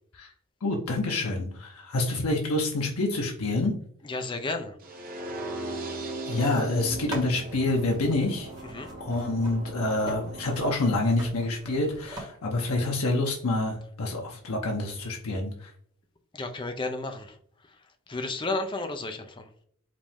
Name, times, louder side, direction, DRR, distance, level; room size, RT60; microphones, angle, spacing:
voice 1, 0.6-3.7 5.7-5.8 6.3-8.5 9.0-15.7, left 2 dB, 80° left, 0.8 m, -27 dB
voice 2, 4.0-4.8 8.6-8.9 16.3-17.4 17.7-17.8 18.1-19.5, left 2 dB, 20° left, 0.5 m, -32 dB
sound 1, 4.8-10.8, right 2 dB, 40° right, 0.8 m, -38 dB
sound 2, 6.9-12.2, right 1 dB, 20° right, 1.4 m, -43 dB
5.0 x 2.7 x 3.5 m
head